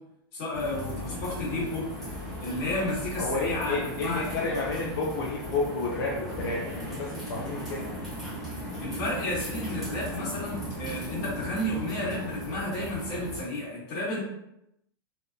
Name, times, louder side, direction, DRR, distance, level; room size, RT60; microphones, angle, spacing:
voice 1, 0.3-1.9 2.4-4.2 8.8-14.2, left 1 dB, 45° left, -7 dB, 1.3 m, -32 dB
sound 1, 0.5-13.4, equal, ahead, 1.1 m, -37 dB
voice 2, 3.2-7.9, left 3 dB, 70° left, -4 dB, 0.5 m, -31 dB
2.7 x 2.1 x 2.3 m, 0.84 s
supercardioid pair, 160°, 12 cm